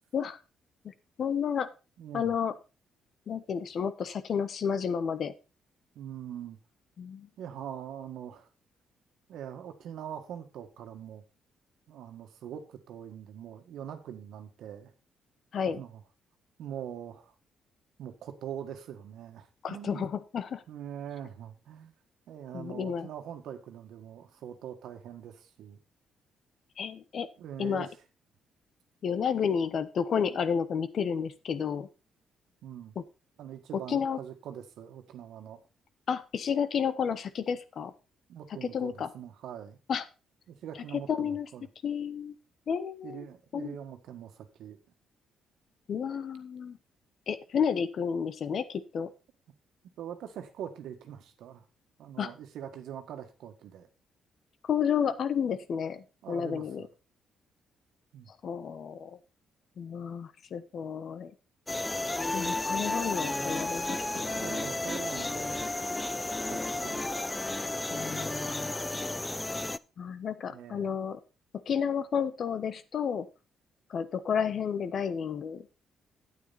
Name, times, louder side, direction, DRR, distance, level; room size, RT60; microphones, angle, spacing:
voice 1, 0.8-1.7 2.1-2.5 3.3-5.3 7.0-7.3 15.5-15.8 19.6-20.6 22.5-23.1 26.8-27.3 27.6-27.9 29.0-31.9 33.9-34.2 36.1-37.9 38.6-39.1 39.9-40.0 40.9-41.5 41.8-42.3 42.7-43.2 43.5-43.7 45.9-46.8 47.3-49.1 52.2-52.3 54.6-56.9 58.4-59.2 59.8-61.3 62.3-64.5 67.9-68.7 70.0-71.2 71.7-73.3 73.9-75.7, left 7 dB, 55° left, 13 dB, 1.0 m, -31 dB
voice 2, 2.0-2.3 5.9-6.6 7.4-8.5 9.3-11.2 11.9-14.9 15.8-16.0 16.6-17.3 18.0-20.0 20.7-21.9 22.3-25.8 27.4-27.9 32.6-33.0 33.4-35.6 38.3-39.8 40.5-41.7 43.0-44.8 50.0-51.6 52.0-53.9 56.2-56.9 58.1-58.3 64.3-65.6 66.5-67.1 68.0-68.5 70.5-70.9, right 9 dB, 80° right, 6 dB, 1.6 m, -43 dB
sound 1, 61.7-69.8, left 2 dB, 15° left, 0.4 m, -32 dB
9.2 x 9.1 x 4.1 m, 0.30 s
cardioid pair, 90°, 0 cm